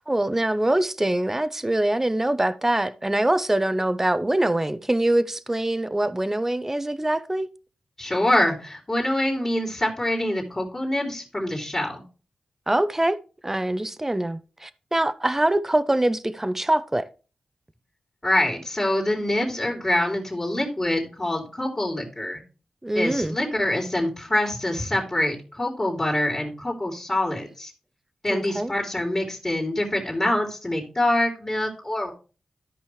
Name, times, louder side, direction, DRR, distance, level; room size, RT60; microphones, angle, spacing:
voice 1, 0.1-7.5 12.7-13.2 13.4-17.0 22.8-23.4 28.3-28.7, right 1 dB, 15° right, 0.7 m, -24 dB
voice 2, 8.0-12.0 18.2-22.4 22.9-27.7 28.2-32.1, left 1 dB, 20° left, 2.7 m, -25 dB
13.0 x 5.4 x 3.2 m
cardioid pair, 70°, 2 cm